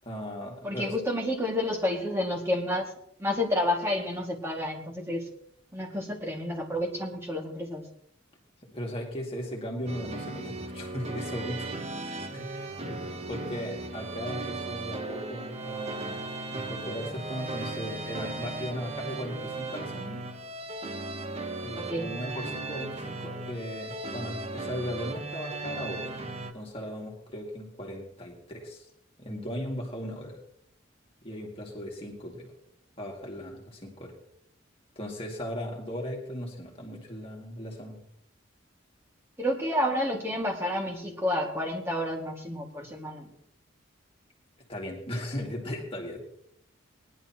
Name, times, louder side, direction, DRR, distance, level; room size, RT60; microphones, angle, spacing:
voice 1, 0.0-0.9 8.7-11.7 12.0-20.2 21.6-26.2 26.5-28.9 29.2-30.4 31.2-32.5 33.0-34.1 35.0-38.0 44.7-46.2, equal, 30° left, -1 dB, 2.2 m, -37 dB
voice 2, 0.6-2.9 3.2-5.2 5.7-7.8 21.8-22.1 39.4-43.3, left 1 dB, 15° right, 0 dB, 2.0 m, -30 dB
sound 1, 9.9-26.5, right 2 dB, 35° right, 0.9 m, -37 dB
19.5 x 11.0 x 3.0 m, 0.70 s
head